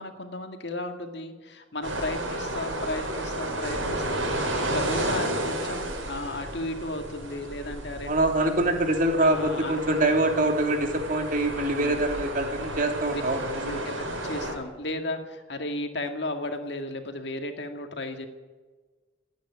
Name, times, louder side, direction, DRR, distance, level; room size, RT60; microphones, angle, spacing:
voice 1, 0.0-8.1 9.2-10.6 11.6-12.0 12.8-13.2 13.6-18.3, left 2 dB, 60° left, 5 dB, 2.1 m, -34 dB
sound 1, 1.8-14.5, right 1 dB, 90° right, 4.7 m, -32 dB
voice 2, 8.1-13.8, right 2 dB, 45° right, 4 dB, 2.7 m, -25 dB
27.5 x 9.6 x 9.9 m, 1.3 s
head